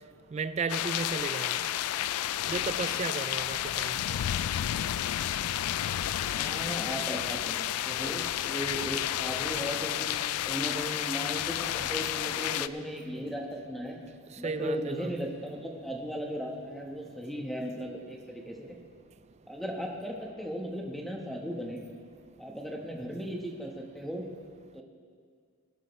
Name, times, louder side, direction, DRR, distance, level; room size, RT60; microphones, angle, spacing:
voice 1, 0.3-1.6 2.5-4.0 14.4-15.1, right 4 dB, 30° right, 0.3 m, -34 dB
sound 1, 0.7-12.7, left 12 dB, 90° left, 0.3 m, -31 dB
voice 2, 6.3-10.2 10.4-14.0 14.4-18.7 19.5-21.8 22.4-24.2 24.7-24.8, equal, ahead, 1.2 m, -37 dB
20.0 x 12.0 x 3.2 m
head